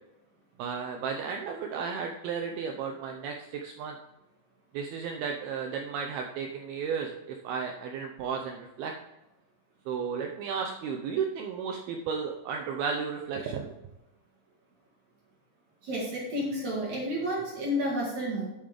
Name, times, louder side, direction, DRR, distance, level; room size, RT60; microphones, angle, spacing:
voice 1, 0.6-4.0 4.7-8.9 9.9-13.7, right 6 dB, 80° right, 3 dB, 2.2 m, -34 dB
voice 2, 15.8-18.5, equal, 55° right, -3 dB, 2.4 m, -31 dB
9.6 x 8.7 x 3.4 m, 0.97 s
omnidirectional pair, 5.1 m